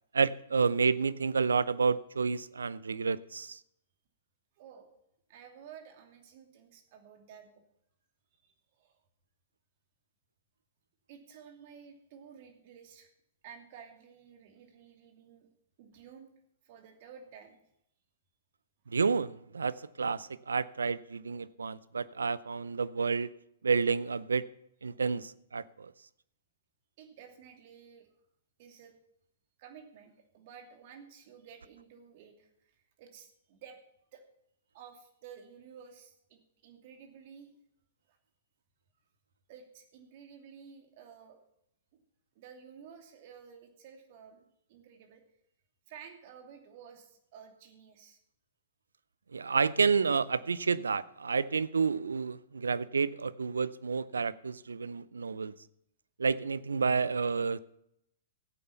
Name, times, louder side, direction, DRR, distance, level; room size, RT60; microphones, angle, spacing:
voice 1, 0.1-3.6 18.9-23.3 23.6-24.5 24.8-25.9 49.3-55.5 56.2-57.6, right 5 dB, 80° right, 0.5 m, -30 dB
voice 2, 4.6-4.9 5.3-7.5 8.4-9.0 11.1-13.1 13.4-15.5 15.8-16.3 16.6-17.6 27.0-28.1 28.6-29.0 29.6-33.8 34.1-34.2 34.7-37.5 38.1-38.2 39.5-41.4 41.9-42.0 42.3-45.2 45.9-48.2, right 7 dB, 50° right, 2.6 m, -53 dB
15.0 x 8.6 x 5.7 m
figure-of-eight pair, 110°, 0 cm